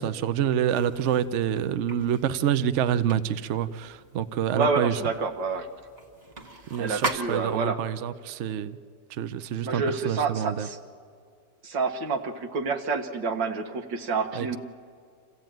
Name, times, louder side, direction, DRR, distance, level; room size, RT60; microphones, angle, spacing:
voice 1, 0.0-5.0 6.7-8.8 9.1-10.7 14.3-14.6, right 9 dB, 60° right, 13 dB, 0.7 m, -27 dB
sound 1, 0.7-7.8, right 2 dB, 25° right, 1.3 m, -39 dB
voice 2, 4.6-5.7 6.8-7.8 9.6-10.8 11.6-14.6, right 4 dB, 85° right, 6 dB, 2.1 m, -28 dB
26.5 x 15.5 x 9.1 m, 2.2 s
omnidirectional pair, 1.9 m